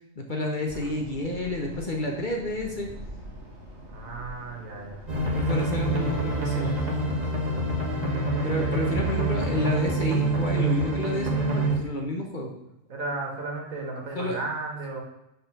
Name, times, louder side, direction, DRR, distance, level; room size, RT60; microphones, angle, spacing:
voice 1, 0.2-2.9 5.3-6.8 8.4-12.5 14.1-14.4, left 1 dB, 40° left, 1 dB, 1.1 m, -30 dB
sound 1, 0.7-6.2, right 1 dB, 60° right, 2.2 m, -44 dB
voice 2, 3.9-5.0 7.5-7.9 8.3-8.6 12.9-15.0, right 3 dB, 85° right, -1 dB, 2.1 m, -35 dB
sound 2, 5.1-11.7, right 2 dB, 35° right, 1.3 m, -26 dB
Wind instrument woodwind instrument, 6.0-9.9, left 3 dB, 80° left, 1.9 m, -46 dB
6.7 x 4.2 x 6.0 m, 0.85 s
omnidirectional pair, 1.4 m